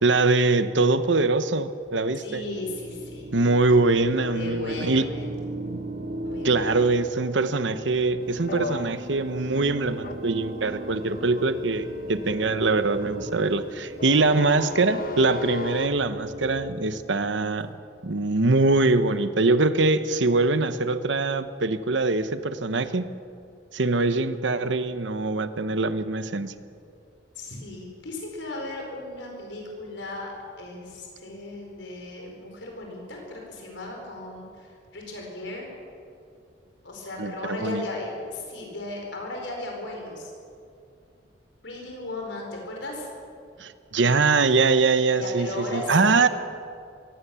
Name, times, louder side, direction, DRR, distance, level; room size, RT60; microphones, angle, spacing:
voice 1, 0.0-2.4 3.3-5.1 5.7-5.8 6.4-17.7 18.0-23.1 23.7-26.5 37.2-37.3 37.6-37.9 43.6-46.3, right 3 dB, 80° right, 12 dB, 1.0 m, -23 dB
voice 2, 2.1-3.4 4.3-5.4 6.2-6.9 27.3-30.3 30.6-35.7 36.8-40.3 41.6-43.1 45.1-46.3, left 2 dB, 80° left, 1 dB, 4.5 m, -36 dB
sound 1, 2.4-16.8, right 1 dB, 45° right, 1.6 m, -38 dB
sound 2, 8.3-15.9, left 3 dB, 50° left, 1.1 m, -36 dB
23.0 x 17.5 x 7.0 m, 2.4 s
head